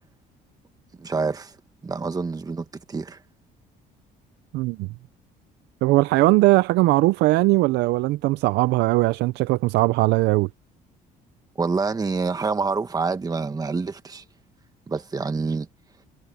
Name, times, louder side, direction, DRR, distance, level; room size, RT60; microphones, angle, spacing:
voice 1, 1.0-1.5 1.8-3.2 11.6-14.2 14.9-15.7, right 4 dB, 20° right, 1.6 m, -27 dB
voice 2, 4.5-4.9 5.8-10.5, right 19 dB, 85° right, 0.6 m, -19 dB
cardioid pair, 110°, 17 cm